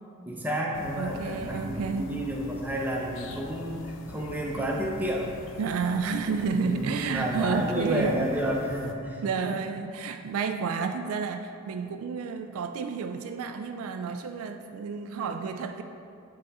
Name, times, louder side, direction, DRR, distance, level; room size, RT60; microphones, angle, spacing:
voice 1, 0.3-5.3 6.6-9.6, equal, 10° right, -2 dB, 0.7 m, -31 dB
sound 1, 0.7-8.9, left 4 dB, 60° left, 0.4 m, -44 dB
voice 2, 1.0-2.2 5.6-8.4 9.2-15.8, right 5 dB, 65° right, 7 dB, 0.3 m, -30 dB
7.7 x 3.8 x 4.2 m, 2.5 s
head